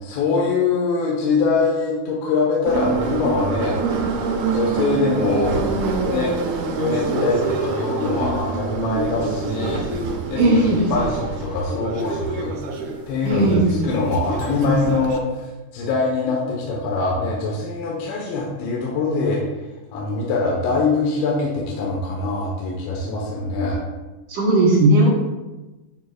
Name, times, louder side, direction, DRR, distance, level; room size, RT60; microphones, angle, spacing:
voice 1, 0.0-3.8 4.3-5.6 6.1-6.3 6.8-9.8 10.3-12.5 13.1-19.4 19.9-23.8, left 3 dB, 85° left, -3 dB, 3.5 m, -23 dB
Subway metro underground, 2.7-15.2, right 4 dB, 85° right, 1.5 m, -26 dB
voice 2, 10.4-10.9 13.2-13.8 24.3-25.1, right 1 dB, 65° right, -5 dB, 2.4 m, -16 dB
10.0 x 7.9 x 2.4 m, 1.1 s
omnidirectional pair, 5.0 m